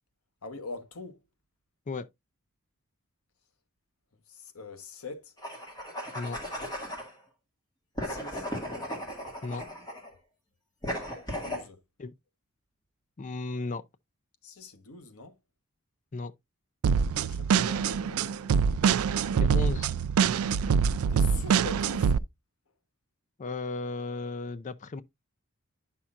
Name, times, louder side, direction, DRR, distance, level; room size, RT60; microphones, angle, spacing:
voice 1, 0.4-1.2 4.3-5.3 8.0-8.5 11.3-11.8 14.4-15.4 17.1-18.6 21.1-22.1, left 3 dB, 85° left, 1.0 m, -43 dB
sound 1, 5.4-7.1 8.0-10.1 10.8-11.7, equal, 20° left, 2.1 m, -36 dB
voice 2, 13.2-13.8 16.1-16.3 19.4-19.9 23.4-25.0, left 3 dB, 35° left, 0.4 m, -35 dB
sound 2, 16.8-22.2, right 6 dB, 80° right, 0.4 m, -25 dB
9.6 x 5.8 x 2.4 m
head